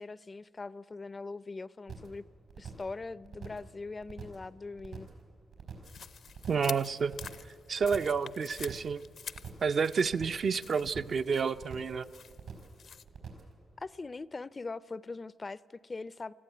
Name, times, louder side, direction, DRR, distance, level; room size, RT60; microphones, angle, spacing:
voice 1, 0.0-2.3 2.6-5.1 13.8-16.3, left 3 dB, 35° left, 0.4 m, -41 dB
sound 1, 1.9-2.2 2.5-2.9 3.2-3.7 4.0-4.5 4.8-5.2 5.5-6.0 6.3-6.7 7.0-7.5 7.8-8.2 8.5-9.0 9.3-9.7 10.0-10.5 10.8-11.2 11.5-12.0 12.3-12.8 13.1-13.5, right 7 dB, 80° right, 4.6 m, -45 dB
sound 2, 5.8-13.0, left 7 dB, 75° left, 0.6 m, -48 dB
voice 2, 6.5-7.2 7.7-9.0 9.6-12.1, right 5 dB, 60° right, 0.5 m, -29 dB
19.5 x 14.5 x 9.3 m
cardioid pair, 65°, 0 cm